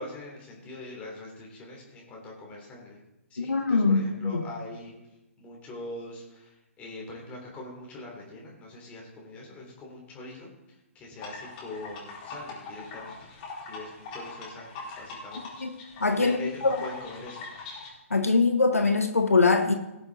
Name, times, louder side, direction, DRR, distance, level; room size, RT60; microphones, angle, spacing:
voice 1, 0.0-3.0 3.3-5.0 5.4-13.1 13.7-15.8 16.2-17.5 18.1-18.3, left 2 dB, 15° left, -2 dB, 3.1 m, -42 dB
voice 2, 3.4-4.4 15.6-15.7 16.0-16.8 18.1-19.7, left 3 dB, 80° left, 7 dB, 1.1 m, -23 dB
sound 1, 11.2-17.9, left 3 dB, 30° left, 4.2 m, -42 dB
19.0 x 7.1 x 4.0 m, 0.95 s
figure-of-eight pair, 130°, 8 cm